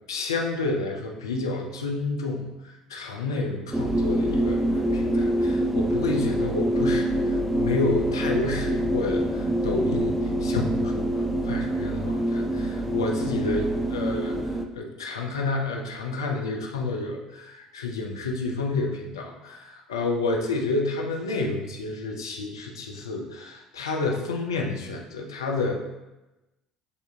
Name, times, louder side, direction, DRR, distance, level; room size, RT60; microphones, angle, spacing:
voice 1, 0.1-10.1 10.4-25.7, left 3 dB, 80° left, 1 dB, 0.5 m, -30 dB
sound 1, 3.7-14.6, right 1 dB, 5° right, 0.4 m, -25 dB
6.8 x 2.7 x 2.7 m, 1.0 s
figure-of-eight pair, 60°, 2 cm